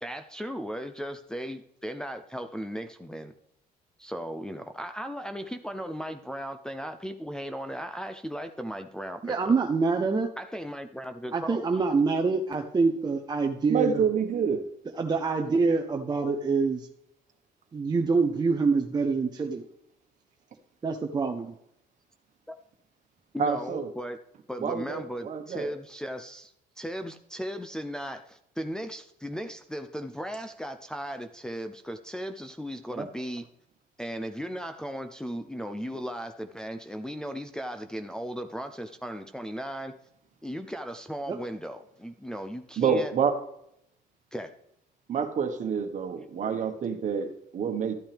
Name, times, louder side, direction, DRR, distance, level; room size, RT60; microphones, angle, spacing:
voice 1, 0.0-3.3 4.0-9.6 10.4-11.7 22.5-22.6 23.3-24.2 24.5-33.5 34.0-40.0 40.4-43.1 44.3-44.6, equal, 5° left, 6 dB, 0.6 m, -37 dB
voice 2, 9.2-10.3 11.3-14.0 15.0-16.9 17.7-19.6 20.8-21.5 33.0-33.1 41.3-41.4, right 4 dB, 25° right, 3 dB, 0.8 m, -26 dB
voice 3, 13.7-14.6 23.4-23.9 24.6-25.7 42.8-43.3 45.1-47.9, right 6 dB, 45° right, 7 dB, 1.4 m, -27 dB
13.0 x 8.7 x 3.5 m, 0.76 s
cardioid pair, 110°, 17 cm